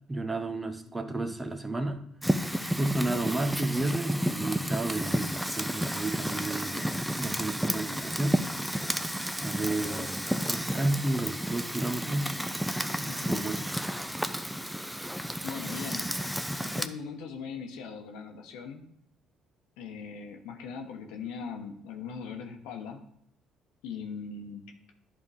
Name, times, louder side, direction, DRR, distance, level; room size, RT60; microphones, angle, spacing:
voice 1, 0.1-2.1 2.7-8.4 9.4-12.4 12.8-13.6, right 2 dB, 20° right, 7 dB, 1.0 m, -32 dB
voice 2, 0.9-1.3 13.1-13.4 15.4-16.1 16.5-18.8 19.8-23.1 23.8-24.7, left 6 dB, 80° left, 3 dB, 1.0 m, -40 dB
Fire, 2.2-16.9, equal, 5° right, 0.6 m, -32 dB
10.5 x 3.7 x 4.9 m, 0.72 s
supercardioid pair, 65°, 0 cm